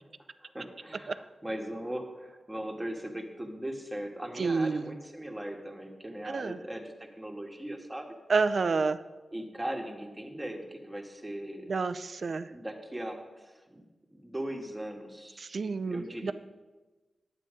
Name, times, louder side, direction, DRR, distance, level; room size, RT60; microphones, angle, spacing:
voice 1, 0.4-8.1 9.3-11.7 12.5-13.8 14.1-15.5 15.9-16.3, right 1 dB, 10° right, 2 dB, 1.7 m, -39 dB
voice 2, 4.4-5.0 6.2-6.6 8.3-9.0 11.7-12.5 15.4-16.3, right 4 dB, 60° right, 12 dB, 0.5 m, -29 dB
11.0 x 8.6 x 5.0 m, 1.2 s
wide cardioid pair, 80°, 0 cm